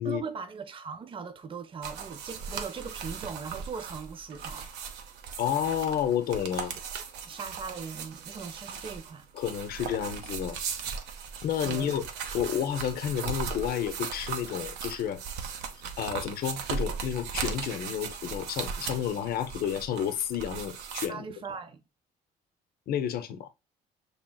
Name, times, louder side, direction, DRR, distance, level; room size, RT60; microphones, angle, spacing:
voice 1, 0.0-4.7 7.2-9.3 11.6-11.9 21.1-21.8, right 5 dB, 30° right, 0.7 m, -39 dB
sound 1, 1.8-21.1, right 6 dB, 80° right, 0.8 m, -38 dB
voice 2, 5.4-6.7 9.3-10.6 11.4-12.0 12.3-15.2 16.0-21.3 22.9-23.5, left 9 dB, 65° left, 0.7 m, -30 dB
6.0 x 3.5 x 2.3 m
cardioid pair, 110°, 17 cm